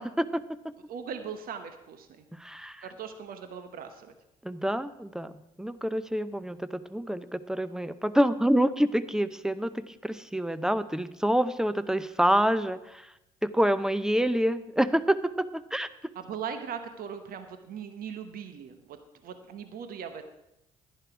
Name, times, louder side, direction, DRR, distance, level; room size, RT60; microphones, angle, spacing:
voice 1, 0.0-0.7 2.4-2.9 4.4-5.3 5.6-13.1 13.4-15.9, equal, 5° right, 14 dB, 0.7 m, -27 dB
voice 2, 0.9-2.1 2.8-4.1 16.1-19.0 19.2-20.2, right 7 dB, 55° right, 8 dB, 1.0 m, -39 dB
11.0 x 10.5 x 4.8 m, 0.87 s
hypercardioid pair, 50°, 17 cm